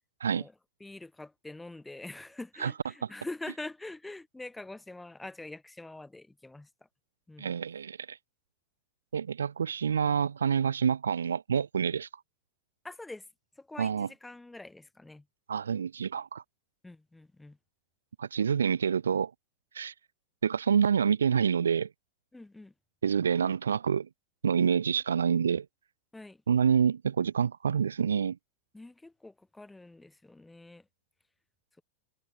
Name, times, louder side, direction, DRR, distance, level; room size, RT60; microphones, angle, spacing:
voice 1, 0.8-6.7 7.3-7.5 12.8-13.3 13.6-15.2 16.8-17.6 22.3-22.7 26.1-26.4 28.7-30.9, left 2 dB, 5° left, 1.3 m, -45 dB
voice 2, 7.4-8.2 9.1-12.1 13.8-14.1 15.5-16.4 18.2-19.3 19.7-19.9 20.4-21.9 23.0-24.1 24.4-25.7 26.5-28.4, right 7 dB, 70° right, 0.4 m, -27 dB
figure-of-eight pair, 90°, 0 cm